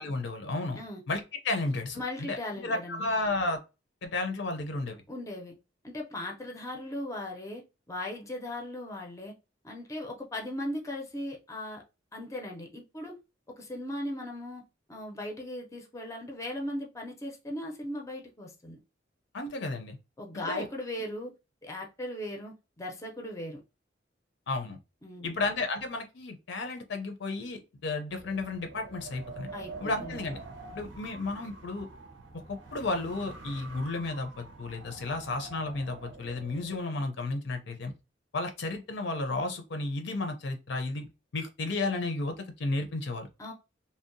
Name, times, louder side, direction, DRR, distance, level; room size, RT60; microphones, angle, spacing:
voice 1, 0.0-0.8 1.1-3.6 4.0-5.0 19.3-20.0 20.3-20.7 24.5-24.8 25.2-29.5 29.8-30.4 30.7-31.9 32.3-37.9 38.3-41.1 41.3-43.3, left 2 dB, 70° left, 0.5 m, -33 dB
voice 2, 2.0-3.0 5.1-5.5 5.8-7.6 7.9-9.3 9.6-11.8 12.1-13.2 13.6-14.6 14.9-18.8 20.2-21.3 21.6-23.6 25.0-25.4 29.5-30.2 43.4-43.5, left 1 dB, 15° left, 0.5 m, -38 dB
Wind, 28.1-36.8, right 3 dB, 80° right, 0.6 m, -46 dB
2.7 x 2.0 x 2.5 m
head